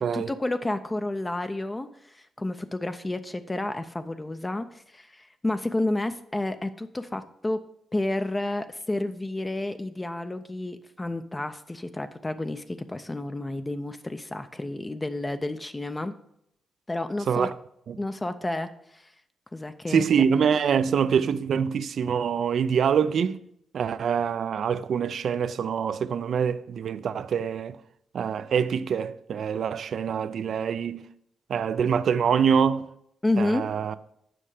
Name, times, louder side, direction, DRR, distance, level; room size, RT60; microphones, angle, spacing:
voice 1, 0.1-7.6 7.9-16.1 16.9-17.5 18.0-19.1 19.5-20.1 33.2-33.6, left 2 dB, 20° left, 0.5 m, -30 dB
voice 2, 19.9-23.4 23.7-27.8 28.1-31.0 31.5-32.9 33.4-33.9, right 7 dB, 70° right, 0.4 m, -25 dB
7.6 x 5.4 x 4.9 m
cardioid pair, 75°, 0 cm